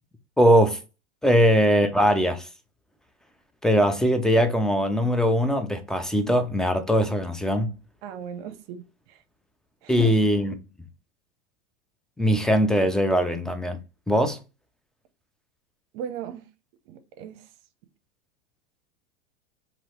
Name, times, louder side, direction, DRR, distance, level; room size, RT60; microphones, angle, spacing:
voice 1, 0.4-0.8 1.2-2.5 3.6-7.7 9.9-10.5 12.2-13.8 14.1-14.4, equal, ahead, 0.5 m, -21 dB
voice 2, 8.0-9.2 9.8-10.1 15.9-16.4 16.9-17.5, right 8 dB, 55° right, 0.8 m, -37 dB
3.0 x 2.8 x 4.3 m
hypercardioid pair, 110°, 35 cm